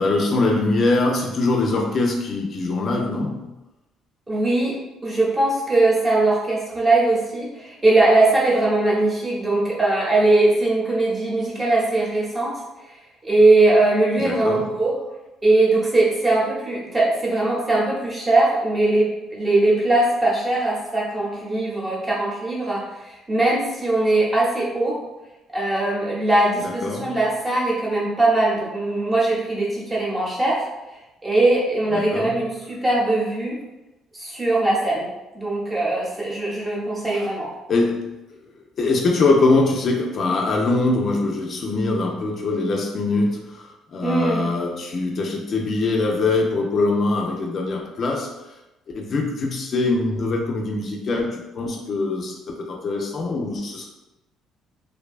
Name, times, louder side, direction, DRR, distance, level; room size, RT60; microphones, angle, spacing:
voice 1, 0.0-3.5 14.2-14.7 26.6-27.2 31.9-32.3 37.1-37.3 37.7-38.1 38.8-48.3 48.9-53.8, left 3 dB, 45° left, 0 dB, 0.3 m, -23 dB
voice 2, 4.3-4.8 5.0-12.5 13.2-14.9 15.4-25.0 25.5-30.6 31.2-33.6 34.2-35.1 35.3-37.5 44.0-44.4, right 2 dB, 20° right, -4 dB, 0.7 m, -20 dB
2.5 x 2.1 x 2.3 m, 0.99 s
cardioid pair, 115°, 0 cm